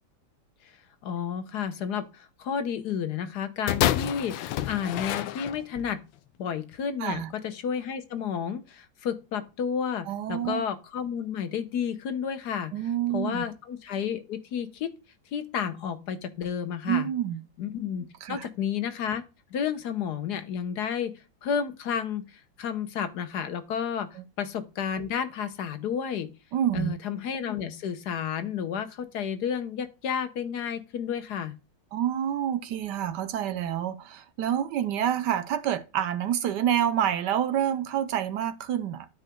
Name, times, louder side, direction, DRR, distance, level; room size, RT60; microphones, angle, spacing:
voice 1, 1.0-6.0 6.4-12.7 13.1-14.9 15.3-17.1 17.6-19.2 19.5-21.1 21.4-26.3 26.7-31.5, left 7 dB, 60° left, 1.4 m, -31 dB
sound 1, 3.7-5.9 6.7-6.8, left 13 dB, 80° left, 1.3 m, -28 dB
voice 2, 10.1-10.6 12.7-13.4 16.9-17.4 18.2-18.5 24.2-24.3 26.5-26.9 31.9-39.1, right 10 dB, 70° right, 1.2 m, -28 dB
13.0 x 4.8 x 2.2 m
omnidirectional pair, 2.1 m